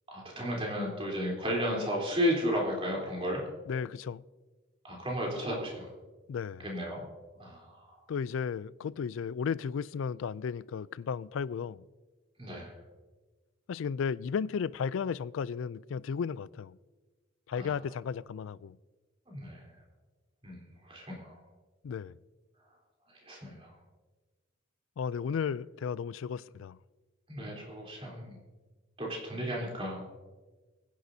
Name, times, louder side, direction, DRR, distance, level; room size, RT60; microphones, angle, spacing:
voice 1, 0.1-3.4 4.8-5.9 6.6-7.0 7.4-8.0 12.4-12.8 17.6-17.7 19.3-19.6 20.4-20.6 20.8-21.4 23.2-23.7 27.3-28.4 29.0-30.1, equal, 25° right, 3.6 m, -33 dB
voice 2, 3.7-4.2 6.3-6.6 8.1-11.8 13.7-16.8 17.5-18.8 21.8-22.2 25.0-26.8, left 6 dB, 70° left, 0.3 m, -34 dB
24.0 x 10.5 x 2.7 m
head